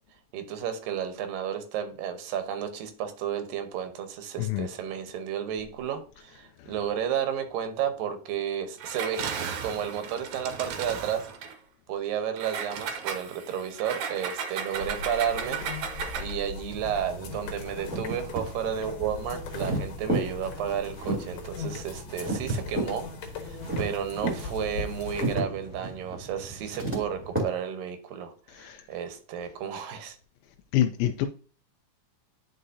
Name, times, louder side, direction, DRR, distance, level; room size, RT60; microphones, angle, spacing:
voice 1, 0.3-11.3 11.9-15.6 16.2-23.1 23.3-30.2, right 8 dB, 85° right, 2.7 m, -32 dB
Engine, 8.8-11.5 12.4-16.4, right 7 dB, 70° right, 2.1 m, -35 dB
sound 1, 14.7-25.4, left 4 dB, 75° left, 2.8 m, -40 dB
sound 2, 16.7-27.4, right 2 dB, 5° right, 1.7 m, -34 dB
voice 2, 30.7-31.3, left 12 dB, 90° left, 2.3 m, -26 dB
11.0 x 4.8 x 2.7 m
omnidirectional pair, 4.0 m